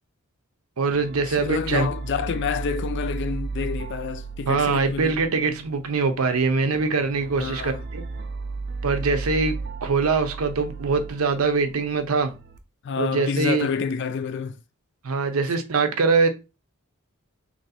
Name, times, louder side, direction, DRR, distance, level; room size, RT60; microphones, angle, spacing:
voice 1, 0.8-1.9 4.5-8.0 8.8-12.3 13.0-13.7 15.0-16.3, right 4 dB, 90° right, 0.7 m, -23 dB
sound 1, 0.9-12.6, right 4 dB, 50° right, 0.4 m, -35 dB
voice 2, 1.3-5.1 7.4-7.8 12.8-14.6, left 6 dB, 55° left, 0.4 m, -28 dB
3.0 x 2.6 x 4.1 m
head